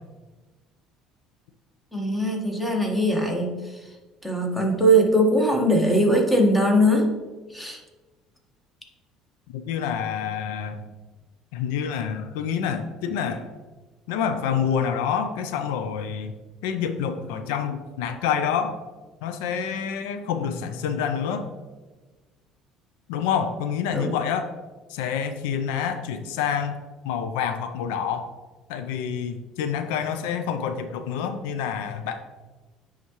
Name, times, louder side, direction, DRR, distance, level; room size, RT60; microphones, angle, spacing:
voice 1, 1.9-3.7 4.2-7.1 7.5-7.8 23.9-24.2, right 1 dB, 5° left, 1 dB, 1.3 m, -21 dB
voice 2, 9.5-10.8 11.5-13.5 14.1-16.3 16.6-18.8 19.2-21.5 23.1-24.5 24.9-26.8 27.0-28.3 28.7-32.2, left 7 dB, 90° left, 8 dB, 0.4 m, -27 dB
9.5 x 3.6 x 3.0 m, 1.3 s
supercardioid pair, 100°, 0 cm